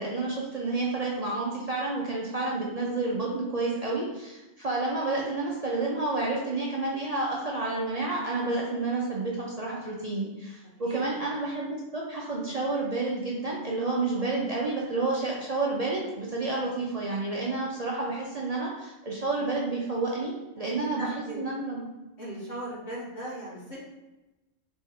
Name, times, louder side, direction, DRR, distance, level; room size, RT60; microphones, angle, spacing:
voice 1, 0.0-21.1 21.4-21.8, right 3 dB, 40° right, -4 dB, 0.6 m, -30 dB
voice 2, 21.0-21.4 22.2-23.8, right 1 dB, 80° left, -7 dB, 2.0 m, -38 dB
4.1 x 3.3 x 3.6 m, 1.0 s
omnidirectional pair, 1.3 m